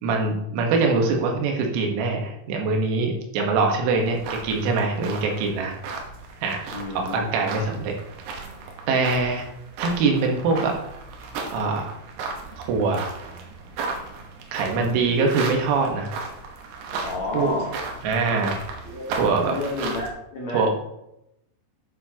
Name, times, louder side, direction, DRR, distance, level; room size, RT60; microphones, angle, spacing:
voice 1, 0.0-5.7 6.4-6.7 7.0-8.0 8.9-9.5 9.8-10.7 11.5-12.0 12.6-13.1 14.5-16.1 17.3-17.5 18.0-18.6 19.2-19.5 20.5-20.7, right 4 dB, 90° right, 2 dB, 4.1 m, -23 dB
sound 1, 4.0-20.1, right 4 dB, 70° right, 2.9 m, -35 dB
voice 2, 6.7-7.2 14.7-15.2 17.0-17.7 18.8-19.0 19.4-20.6, left 2 dB, 90° left, -4 dB, 1.5 m, -30 dB
12.0 x 7.0 x 2.9 m, 0.83 s
omnidirectional pair, 5.9 m